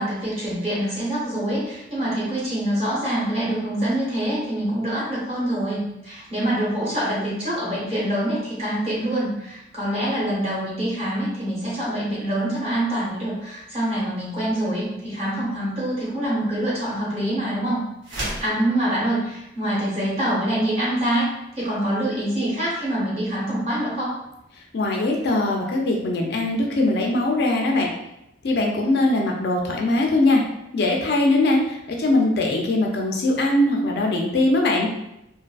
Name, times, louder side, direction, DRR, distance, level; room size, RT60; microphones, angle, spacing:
voice 1, 0.0-17.8 18.1-21.3 21.5-24.2, right 1 dB, 35° right, -8 dB, 1.1 m, -25 dB
sound 1, 18.0-18.6, right 1 dB, 85° right, 0.8 m, -30 dB
voice 2, 24.7-27.9 28.4-30.4 30.7-34.9, left 2 dB, 60° left, 1 dB, 0.4 m, -21 dB
2.5 x 2.4 x 2.3 m, 0.85 s
head